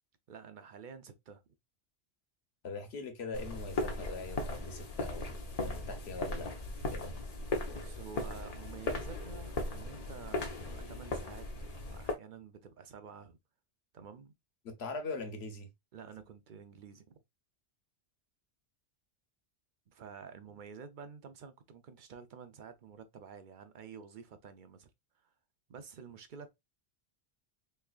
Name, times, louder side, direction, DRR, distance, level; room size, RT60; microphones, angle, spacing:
voice 1, 0.3-1.4 7.7-11.5 11.8-13.4 13.9-14.3 15.9-17.2 19.9-24.9 25.7-26.5, right 6 dB, 50° right, 0.7 m, -50 dB
voice 2, 2.6-6.5 6.9-7.2 14.6-15.7, left 3 dB, 70° left, 1.2 m, -42 dB
sound 1, 3.3-12.1, left 2 dB, 40° left, 0.7 m, -38 dB
3.5 x 3.3 x 2.4 m
omnidirectional pair, 1.2 m